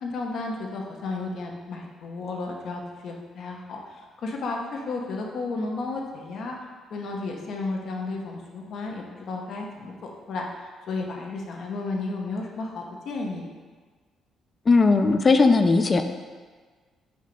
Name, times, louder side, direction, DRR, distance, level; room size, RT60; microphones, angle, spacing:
voice 1, 0.0-3.8 4.2-6.6 6.9-10.5 10.9-13.5, left 3 dB, 65° left, 0 dB, 0.9 m, -33 dB
voice 2, 14.7-16.0, left 3 dB, 35° left, 7 dB, 0.4 m, -18 dB
6.4 x 2.9 x 5.3 m, 1.5 s
cardioid pair, 90°, 0 cm